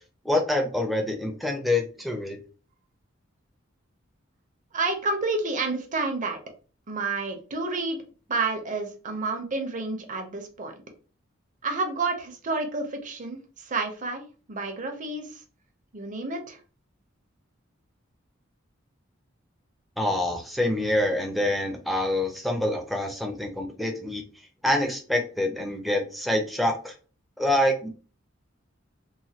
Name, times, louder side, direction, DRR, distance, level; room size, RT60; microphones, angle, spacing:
voice 1, 0.2-2.4 20.0-24.2 24.6-26.9 27.4-27.9, left 1 dB, ahead, 2 dB, 0.5 m, -26 dB
voice 2, 4.7-6.4 6.9-8.0 8.3-10.7 11.6-15.4 15.9-16.6, right 3 dB, 40° right, 4 dB, 0.6 m, -30 dB
3.1 x 2.2 x 2.8 m, 0.37 s
head